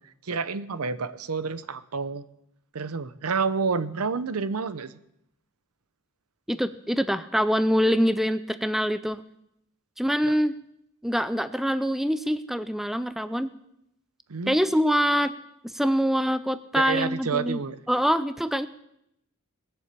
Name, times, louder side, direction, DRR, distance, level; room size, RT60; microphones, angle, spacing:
voice 1, 0.2-2.2 2.7-5.0 10.2-10.3 14.3-14.6 16.8-17.8, right 5 dB, 80° right, 15 dB, 0.8 m, -29 dB
voice 2, 6.5-9.2 10.0-10.5 11.0-13.5 14.5-15.4 15.6-17.6 17.9-18.7, equal, ahead, 13 dB, 0.4 m, -24 dB
19.5 x 7.1 x 8.2 m, 0.80 s
head